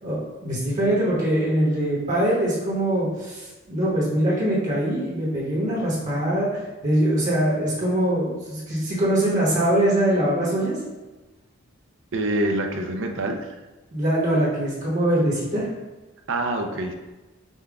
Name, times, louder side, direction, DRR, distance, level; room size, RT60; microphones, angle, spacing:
voice 1, 0.0-10.8 13.9-15.7, right 1 dB, 35° right, -6 dB, 1.1 m, -23 dB
voice 2, 12.1-13.5 16.3-16.9, right 1 dB, 60° right, 3 dB, 0.5 m, -26 dB
5.5 x 2.3 x 3.5 m, 1.1 s
head